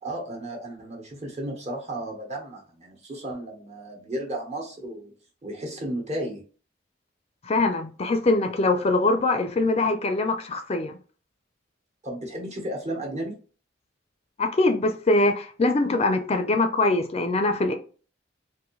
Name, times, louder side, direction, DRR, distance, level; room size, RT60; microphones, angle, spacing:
voice 1, 0.0-5.1 5.4-6.4 12.0-13.4, right 1 dB, 40° right, 1.2 m, -34 dB
voice 2, 7.4-11.0 14.4-17.7, left 2 dB, 35° left, 0.4 m, -23 dB
3.9 x 2.6 x 3.0 m
head